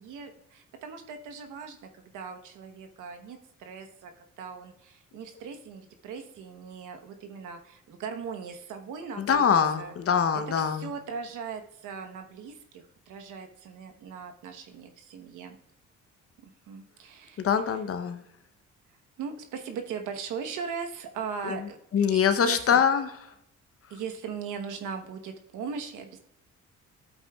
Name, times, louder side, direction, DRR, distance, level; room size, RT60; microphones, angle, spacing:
voice 1, 0.0-9.4 9.8-9.9 10.3-15.6 16.4-17.5 19.2-21.8 22.1-22.8 23.9-26.2, right 6 dB, 85° right, 5 dB, 1.1 m, -39 dB
voice 2, 9.2-10.9 17.4-18.2 21.5-21.6 21.9-23.1, left 7 dB, 50° left, 9 dB, 0.8 m, -24 dB
12.0 x 8.1 x 2.3 m, 0.81 s
cardioid pair, 90°, 30 cm